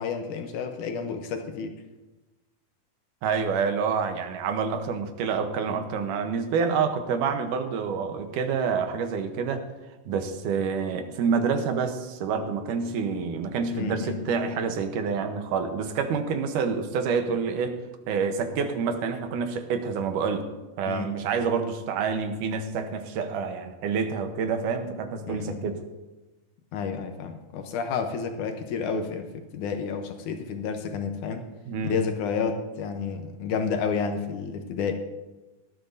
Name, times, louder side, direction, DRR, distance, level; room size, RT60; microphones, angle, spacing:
voice 1, 0.0-1.8 13.7-14.2 20.9-21.1 25.3-25.6 26.7-31.4 31.9-34.9, left 5 dB, 80° left, 6 dB, 2.3 m, -30 dB
voice 2, 3.2-9.6 10.1-17.8 18.1-20.5 20.8-25.8 31.7-32.0, right 5 dB, 90° right, 7 dB, 2.6 m, -27 dB
17.5 x 12.0 x 2.7 m, 1.1 s
omnidirectional pair, 3.6 m